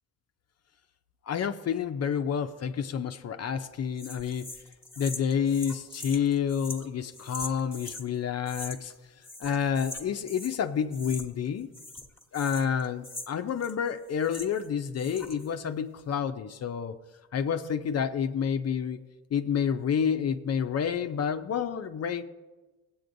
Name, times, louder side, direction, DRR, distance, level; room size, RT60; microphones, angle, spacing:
voice 1, 1.3-4.5 5.0-8.9 9.4-11.7 12.3-17.0 17.3-19.0 19.3-22.2, left 7 dB, 45° left, 8 dB, 0.5 m, -29 dB
sound 1, 4.0-8.1 8.5-9.0 9.2-10.6 10.9-11.5 11.7-14.7 14.9-15.5, left 2 dB, 5° left, 1.1 m, -42 dB
16.5 x 8.4 x 2.6 m, 1.2 s
cardioid pair, 105°, 36 cm